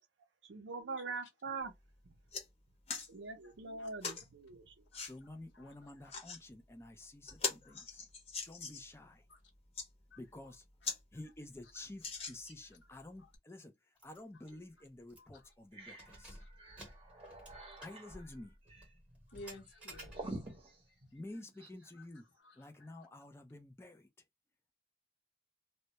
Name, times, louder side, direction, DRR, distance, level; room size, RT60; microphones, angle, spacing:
voice 1, 0.4-1.7 3.1-4.7, right 4 dB, 85° right, 0.5 m, -43 dB
sound 1, 1.6-1.7 2.1-2.4 2.9-3.1 4.0-4.2 4.9-5.1 5.9-6.4 6.9-7.0 7.3-8.9 9.5-9.9 10.4-10.5 10.8-11.0 11.3-11.4 12.0-12.7 13.3-13.4, left 4 dB, 35° left, 0.7 m, -41 dB
voice 2, 5.0-8.0 8.5-9.2 10.2-10.6 11.1-16.4 17.8-18.6 21.1-22.2 22.6-24.1, left 2 dB, 15° left, 0.4 m, -51 dB
voice 3, 5.5-6.1 7.7-8.1 9.3-9.4 10.1-10.2 11.8-11.9 13.2-13.3 15.2-15.4 16.3-16.5 17.3-17.7 19.3-20.5 21.9-22.0 22.4-23.1, left 1 dB, 90° left, 0.8 m, -56 dB
Keys jangling, 14.0-14.2 14.5-14.6 15.1-15.4 15.9-20.6, right 1 dB, 5° right, 0.9 m, -54 dB
Creepy Ambience, 14.5-14.6 15.1-15.2 15.5-21.9, right 2 dB, 30° right, 0.7 m, -50 dB
2.2 x 2.0 x 2.8 m
head